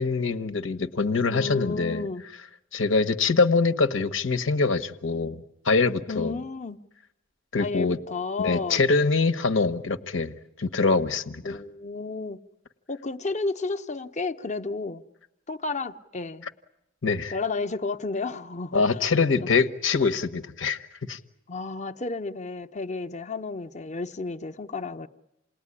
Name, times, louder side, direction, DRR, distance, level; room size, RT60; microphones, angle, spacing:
voice 1, 0.0-2.1 2.7-6.4 7.5-8.0 8.4-11.6 17.0-17.4 18.7-21.2, left 4 dB, 80° left, 1.3 m, -24 dB
voice 2, 1.3-2.2 6.1-6.8 7.6-8.8 11.4-12.4 12.9-15.0 15.5-16.5 17.3-19.0 19.4-19.5 21.5-25.1, left 3 dB, 40° left, 0.9 m, -32 dB
28.5 x 19.5 x 10.0 m
head